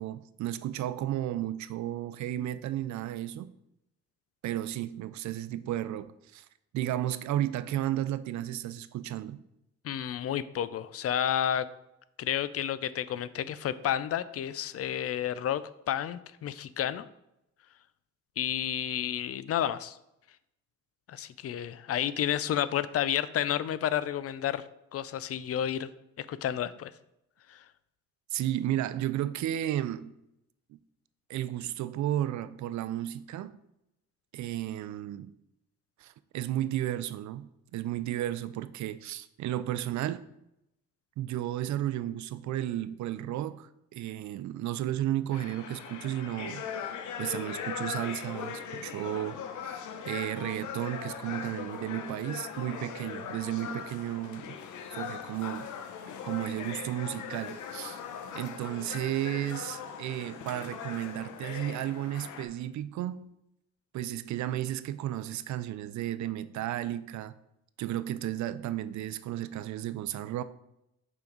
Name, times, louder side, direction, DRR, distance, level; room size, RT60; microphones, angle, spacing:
voice 1, 0.0-3.5 4.4-6.5 6.7-9.4 21.2-21.3 28.3-30.1 30.7-30.8 31.3-33.6 34.3-35.3 36.0-40.3 41.2-46.7 47.2-54.6 54.9-55.7 56.2-58.0 58.3-63.3 63.9-67.3 67.8-70.4, right 13 dB, 70° right, 0.5 m, -33 dB
voice 2, 9.8-11.7 12.2-15.6 15.9-17.1 18.4-20.0 21.1-24.6 24.9-25.9 26.2-26.9 27.5-27.6, left 10 dB, 50° left, 0.4 m, -31 dB
sound 1, 45.3-62.5, left 7 dB, 75° left, 0.8 m, -40 dB
5.8 x 5.1 x 3.9 m
cardioid pair, 90°, 30 cm